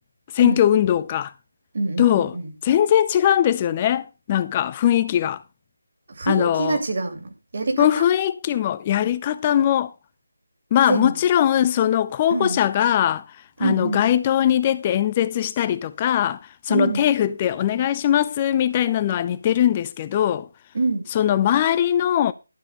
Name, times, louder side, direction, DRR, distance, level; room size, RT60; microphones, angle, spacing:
voice 1, 0.3-1.3 2.0-2.3 2.6-5.4 6.3-6.8 7.8-9.9 10.7-13.2 13.6-16.4 16.7-20.5 21.1-22.3, left 11 dB, 20° left, 0.6 m, -20 dB
voice 2, 1.7-2.5 6.2-8.0 10.9-11.1 12.3-12.6 13.6-14.0 16.7-17.1 20.7-21.1, right 3 dB, 45° right, 2.9 m, -25 dB
12.5 x 5.1 x 6.5 m
figure-of-eight pair, 155°, 0 cm